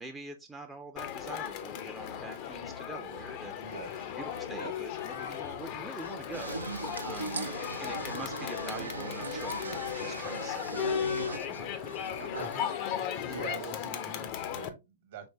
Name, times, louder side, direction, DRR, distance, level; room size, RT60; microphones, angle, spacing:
voice 1, 0.0-3.5 4.2-7.5 7.8-12.7, right 3 dB, 10° right, 0.5 m, -45 dB
Crowd, 1.0-14.7, left 9 dB, 40° left, 0.5 m, -36 dB
sound 1, 3.6-12.6, left 2 dB, 85° left, 0.9 m, -50 dB
voice 2, 3.6-4.1 4.6-4.8 12.1-12.6 13.1-15.3, right 6 dB, 55° right, 1.1 m, -44 dB
sound 2, 6.3-11.4, right 4 dB, 80° right, 0.4 m, -39 dB
4.4 x 3.2 x 2.6 m
figure-of-eight pair, 115°, 0 cm